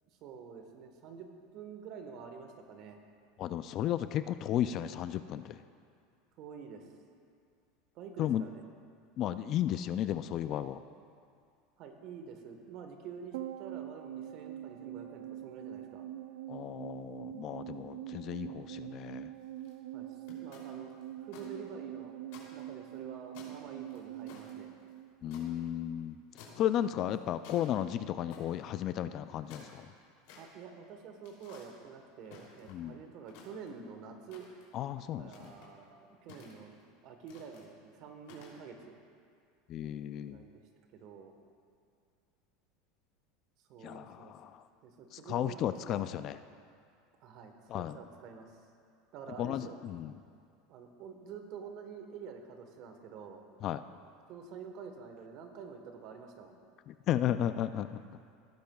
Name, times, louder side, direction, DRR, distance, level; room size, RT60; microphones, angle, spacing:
voice 1, 0.2-1.3 1.5-3.0 6.4-6.9 7.9-8.6 11.8-16.1 19.9-20.1 20.4-20.9 21.2-22.1 22.5-24.7 30.3-34.4 35.2-36.8 37.0-38.9 40.3-40.6 40.9-41.3 43.7-44.3 44.8-46.1 47.2-48.6 49.1-49.8 50.7-53.4 54.3-56.5, right 6 dB, 50° right, 5 dB, 1.2 m, -48 dB
voice 2, 3.4-5.6 8.2-8.4 9.2-10.8 16.5-19.3 25.2-26.2 26.6-29.9 32.7-33.0 34.7-35.5 39.7-40.4 43.8-44.6 45.3-46.4 47.7-48.0 49.4-50.2 53.6-53.8 56.9-58.0, left 11 dB, 40° left, 12 dB, 0.3 m, -34 dB
sound 1, 13.3-25.9 26.1-26.2, right 13 dB, 90° right, 0.4 m, -44 dB
sound 2, 19.3-19.7 20.3-21.5 21.8-21.9 22.3-23.0 23.3-25.4 26.4-26.8 27.1-27.7 28.3-28.6 29.2-30.4 31.2-31.7 32.2-32.9 33.2-33.8 34.3-34.7 35.3-35.7 36.3-36.8 37.3-37.6 38.2-38.6, left 5 dB, 75° left, 2.9 m, -54 dB
17.0 x 10.0 x 2.3 m, 2.3 s
supercardioid pair, 145°, 0 cm